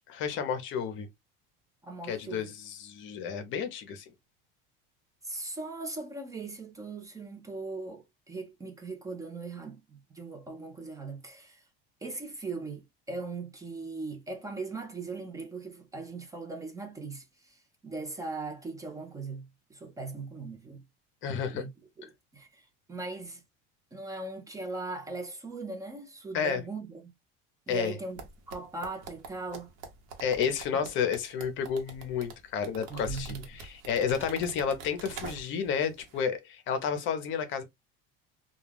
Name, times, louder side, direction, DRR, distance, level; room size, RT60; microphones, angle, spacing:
voice 1, 0.1-1.1 2.1-4.1 21.2-21.6 26.3-26.6 27.7-27.9 30.2-37.6, left 7 dB, 40° left, 0.6 m, -31 dB
voice 2, 1.8-2.5 5.2-11.6 12.0-20.8 21.5-21.7 22.0-23.4 23.9-27.1 27.7-28.2 28.5-29.7 32.9-33.4, right 3 dB, 10° right, 0.4 m, -39 dB
sound 1, 28.2-35.7 36.0-36.2, right 4 dB, 80° right, 0.9 m, -44 dB
2.3 x 2.2 x 3.2 m
cardioid pair, 155°, 29 cm